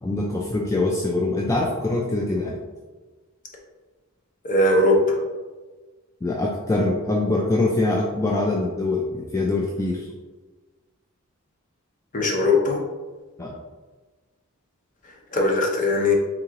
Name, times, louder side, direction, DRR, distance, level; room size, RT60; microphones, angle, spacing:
voice 1, 0.0-2.5 6.2-10.1 13.4-13.5, left 2 dB, 15° left, -2 dB, 0.3 m, -24 dB
voice 2, 4.4-5.2 12.1-12.8 15.3-16.1, left 2 dB, 35° left, -1 dB, 0.8 m, -19 dB
3.7 x 3.0 x 3.7 m, 1.3 s
head